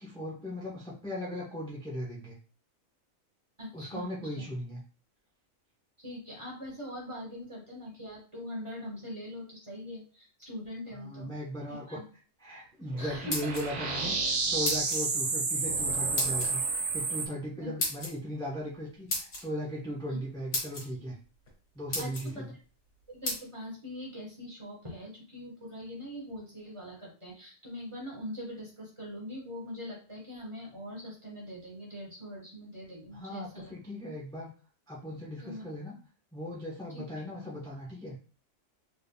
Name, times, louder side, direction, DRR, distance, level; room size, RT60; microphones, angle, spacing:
voice 1, 0.0-2.3 3.7-4.8 10.9-12.0 12.4-21.1 21.7-22.5 33.1-34.5 34.9-35.9 36.3-38.2, equal, 5° left, -5 dB, 0.9 m, -38 dB
voice 2, 3.6-4.5 6.0-11.3 11.7-12.0 13.0-13.5 14.0-14.1 17.6-17.7 20.1-20.2 22.0-22.4 23.1-33.7 35.4-35.6 36.9-37.0, left 1 dB, 25° right, -4 dB, 1.4 m, -42 dB
sound 1, 12.9-17.3, right 4 dB, 70° right, 0.3 m, -30 dB
sound 2, 13.1-13.9 14.6-15.0 16.2-16.5 17.8-18.1 19.1-19.4 20.1-20.2 20.5-20.8 21.5-21.6 21.9-22.3 23.2-23.4, left 2 dB, 60° left, 1.8 m, -33 dB
3.7 x 3.6 x 2.3 m, 0.37 s
omnidirectional pair, 1.4 m